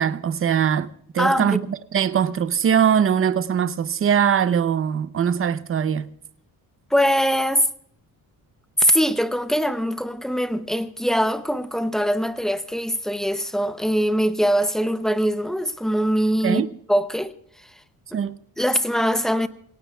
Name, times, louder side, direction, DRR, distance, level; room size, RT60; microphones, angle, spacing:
voice 1, 0.0-6.1 16.4-16.8 18.1-18.4, right 8 dB, 35° right, 0.7 m, -21 dB
voice 2, 1.2-1.6 6.9-7.7 8.8-16.6 16.9-17.3 17.6-17.7 18.1-18.2 18.6-19.5, equal, ahead, 0.6 m, -22 dB
26.0 x 18.0 x 2.3 m
cardioid pair, 155°, 37 cm